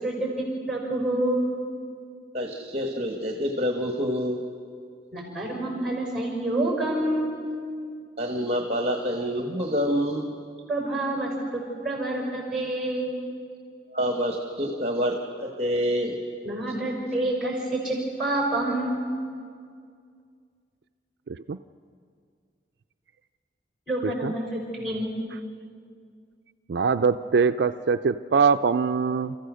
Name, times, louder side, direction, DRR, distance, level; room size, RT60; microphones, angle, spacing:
voice 1, 0.0-1.5 5.1-7.4 10.7-13.2 16.4-19.0 23.9-25.1, right 1 dB, 5° right, -1 dB, 5.9 m, -28 dB
voice 2, 2.3-4.4 8.2-10.3 13.9-16.2, equal, 35° right, 2 dB, 1.4 m, -27 dB
voice 3, 21.3-21.6 24.2-24.3 26.7-29.3, right 5 dB, 70° right, 9 dB, 0.4 m, -23 dB
29.5 x 14.5 x 6.3 m, 2.2 s
head